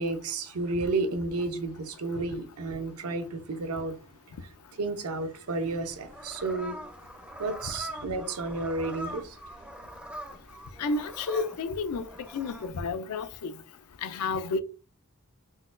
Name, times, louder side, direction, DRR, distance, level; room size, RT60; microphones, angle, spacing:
voice 1, 0.0-4.0 4.8-6.8 7.4-9.4, right 3 dB, 80° right, 0.6 m, -31 dB
sound 1, 5.7-12.7, equal, 5° right, 0.4 m, -43 dB
voice 2, 10.8-12.1 12.3-13.5 14.0-14.6, left 3 dB, 75° left, 0.4 m, -31 dB
3.9 x 2.1 x 2.4 m
head